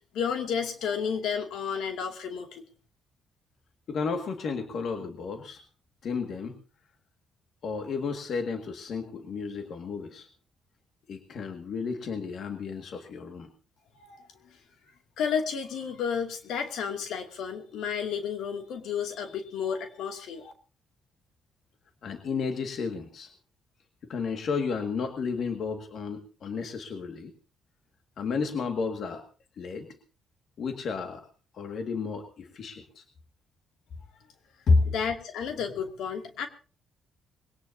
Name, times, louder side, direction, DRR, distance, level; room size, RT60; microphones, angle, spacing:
voice 1, 0.1-2.6 13.9-14.2 15.2-20.5 34.9-36.5, left 7 dB, 80° left, 5 dB, 2.4 m, -32 dB
voice 2, 3.9-5.6 6.0-6.6 7.6-10.3 11.1-13.5 22.0-23.3 24.1-27.3 28.2-29.2 29.6-29.9 30.6-31.2 31.5-33.0 34.7-34.9, left 4 dB, 60° left, 5 dB, 1.9 m, -31 dB
21.5 x 18.0 x 2.7 m, 0.36 s
cardioid pair, 90°, 0 cm